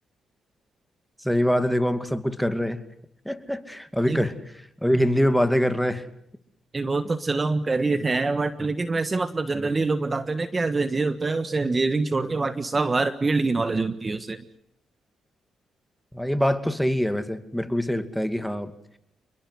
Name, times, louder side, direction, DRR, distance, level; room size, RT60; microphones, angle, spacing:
voice 1, 1.2-2.8 3.3-4.4 4.8-6.1 9.5-9.7 16.1-18.7, equal, ahead, 2.4 m, -24 dB
voice 2, 6.7-14.4, right 3 dB, 30° right, 1.5 m, -25 dB
28.0 x 22.0 x 7.9 m
cardioid pair, 80°, 0 cm